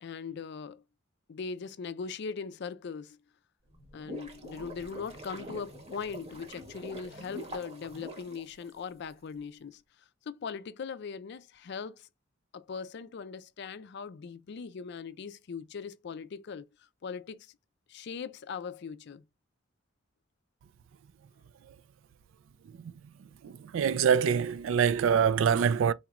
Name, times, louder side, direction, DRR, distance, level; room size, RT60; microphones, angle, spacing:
voice 1, 0.0-0.8 1.3-3.2 3.9-9.8 10.3-12.1 12.5-16.7 17.0-17.5 17.9-19.2, left 5 dB, 60° left, 0.4 m, -40 dB
sound 1, 3.7-9.1, right 1 dB, 30° right, 1.1 m, -45 dB
voice 2, 23.4-25.9, right 7 dB, 70° right, 0.3 m, -25 dB
4.2 x 2.9 x 2.4 m
head